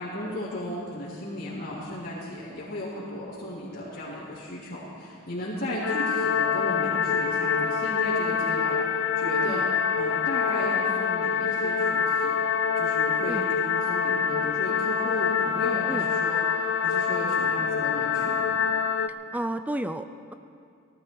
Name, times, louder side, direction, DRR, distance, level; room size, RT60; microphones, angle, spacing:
voice 1, 0.0-8.8 9.1-9.7 9.9-12.4 12.7-18.4, left 1 dB, 50° left, -11 dB, 3.4 m, -35 dB
sound 1, 5.8-19.1, left 6 dB, 65° left, 0.5 m, -25 dB
voice 2, 19.3-20.3, right 1 dB, 5° right, 10 dB, 0.4 m, -32 dB
18.5 x 15.0 x 4.7 m, 2.4 s
head